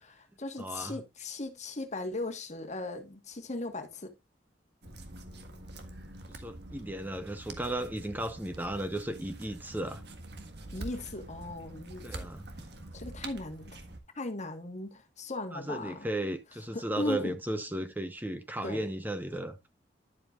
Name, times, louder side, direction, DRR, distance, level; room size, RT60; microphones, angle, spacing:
voice 1, 0.1-4.1 10.7-12.2 12.9-13.8 14.1-16.1 16.7-17.4 18.6-18.9, left 2 dB, 40° left, 1.4 m, -38 dB
voice 2, 0.6-1.0 6.3-10.0 12.0-12.5 15.5-19.7, right 1 dB, 10° right, 0.8 m, -35 dB
sound 1, 4.8-14.0, right 2 dB, 65° right, 1.6 m, -45 dB
11.0 x 7.7 x 2.4 m
head